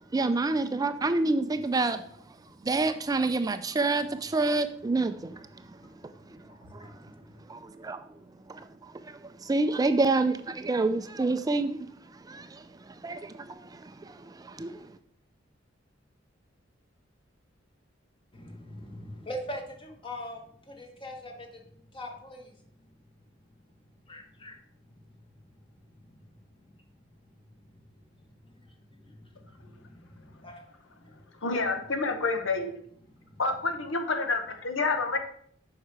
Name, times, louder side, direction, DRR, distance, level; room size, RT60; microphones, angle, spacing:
voice 1, 0.1-2.0 2.6-5.4 6.3-6.4 6.7-6.9 7.5-8.0 8.5-11.9 12.3-14.9, right 3 dB, 20° right, 0.4 m, -28 dB
voice 2, 2.7-3.3 3.9-4.2 4.6-4.7 5.5-7.4 18.3-22.6 24.0-30.6 31.0-31.4 33.0-33.4, equal, 25° left, 1.5 m, -45 dB
voice 3, 31.4-32.7 33.4-35.2, left 3 dB, 85° left, 1.1 m, -28 dB
7.5 x 5.6 x 4.8 m
head